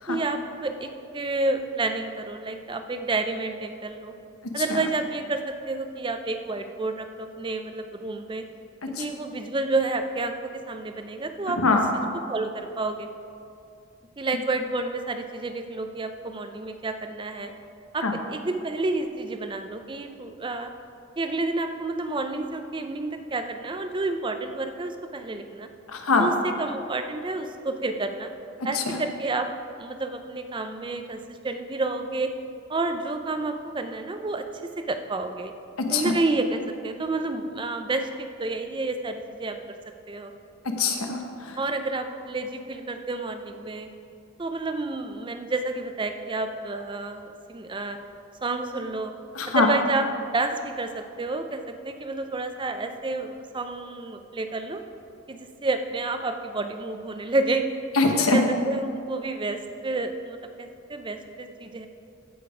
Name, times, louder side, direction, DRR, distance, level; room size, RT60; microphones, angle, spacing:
voice 1, 0.1-4.1 4.5-8.5 9.0-10.3 10.7-11.6 12.3-13.1 14.2-17.5 17.9-18.0 18.3-20.7 21.2-25.7 26.2-26.3 26.6-28.3 28.6-29.5 29.8-32.3 32.7-35.5 35.9-39.6 40.1-40.3 41.6-43.9 44.4-48.0 48.4-49.1 49.5-50.1 50.3-54.8 55.3-57.7 58.1-61.9, right 2 dB, 20° right, 7 dB, 0.5 m, -30 dB
voice 2, 25.9-26.3 28.7-29.0 35.9-36.1 40.8-41.6 49.3-49.7 57.9-58.4, left 3 dB, 85° left, 3 dB, 1.1 m, -23 dB
15.0 x 5.1 x 4.9 m, 2.5 s
head